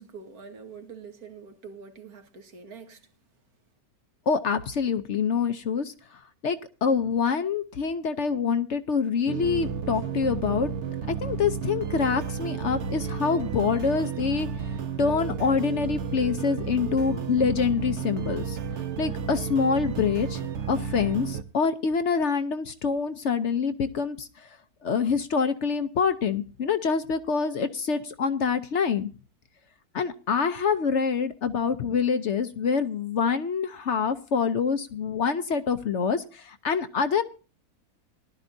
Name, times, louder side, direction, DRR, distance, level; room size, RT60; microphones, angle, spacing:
voice 1, 0.0-3.1, right 5 dB, 75° right, 2.0 m, -45 dB
voice 2, 4.3-5.9 6.4-10.7 11.1-14.5 15.0-18.6 19.0-24.5 24.8-29.1 29.9-37.2, left 5 dB, 55° left, 0.9 m, -26 dB
sound 1, 9.3-21.4, right 7 dB, 55° right, 1.0 m, -32 dB
18.5 x 12.0 x 2.6 m
omnidirectional pair, 1.6 m